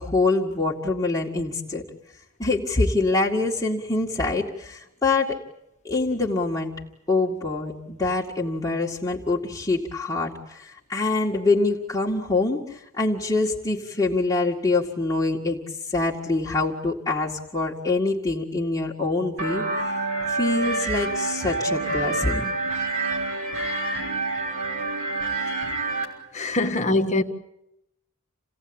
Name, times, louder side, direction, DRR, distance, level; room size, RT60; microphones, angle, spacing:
voice 1, 0.0-1.8 2.4-5.4 5.8-6.7 7.1-15.6 15.9-19.6 20.3-22.5 26.6-26.7, left 3 dB, 15° left, 2.1 m, -25 dB
sound 1, 19.4-26.0, right 2 dB, 80° right, 5.6 m, -27 dB
voice 2, 26.3-27.2, left 2 dB, 35° left, 1.5 m, -23 dB
29.0 x 17.5 x 8.9 m
head